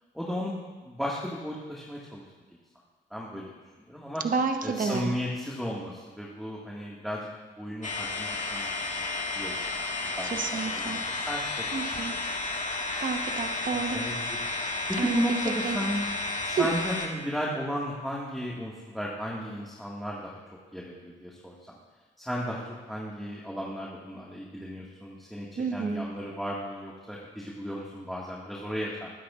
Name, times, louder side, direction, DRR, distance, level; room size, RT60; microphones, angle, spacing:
voice 1, 0.1-2.2 3.1-3.5 3.9-4.2 4.6-7.3 7.6-9.1 9.4-9.6 10.0-12.4 13.7-14.4 14.9-16.1 16.4-20.4 20.7-21.8 22.2-22.6 22.9-29.1, equal, ahead, -4 dB, 1.9 m, -35 dB
voice 2, 4.2-5.1 10.3-11.0 11.7-12.1 13.0-14.0 15.0-15.2 15.5-15.8 16.6-16.7 25.6-26.0, right 5 dB, 45° right, 5 dB, 1.1 m, -30 dB
sound 1, 7.8-17.1, left 3 dB, 40° left, 1.8 m, -32 dB
21.0 x 10.0 x 2.5 m, 1.4 s
cardioid pair, 90°, 20 cm